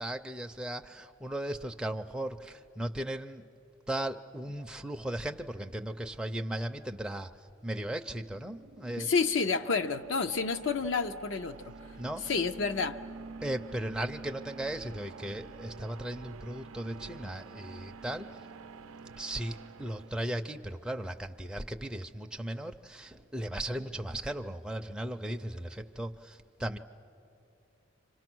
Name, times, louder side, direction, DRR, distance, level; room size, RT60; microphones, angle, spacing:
voice 1, 0.0-3.4 3.9-7.3 7.6-9.1 12.0-12.3 13.4-18.4 19.2-26.8, right 1 dB, 5° right, 4 dB, 0.5 m, -37 dB
sound 1, 8.0-20.8, right 4 dB, 85° right, 0.5 m, -48 dB
voice 2, 9.0-11.7 12.2-13.0, left 4 dB, 65° left, 7 dB, 0.6 m, -29 dB
30.0 x 26.0 x 6.2 m, 2.7 s
head